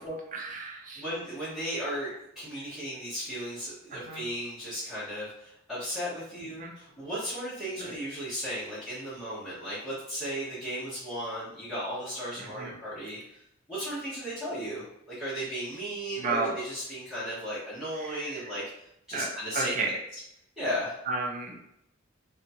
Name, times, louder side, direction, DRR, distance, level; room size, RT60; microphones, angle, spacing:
voice 1, 0.3-1.0 4.1-4.2 6.6-6.7 12.6-12.7 16.2-16.5 19.1-19.9 21.1-21.6, right 3 dB, 40° right, 0 dB, 0.5 m, -31 dB
voice 2, 0.9-13.4 13.7-19.7 20.6-21.0, equal, ahead, -13 dB, 1.0 m, -35 dB
2.7 x 2.3 x 2.6 m, 0.77 s
head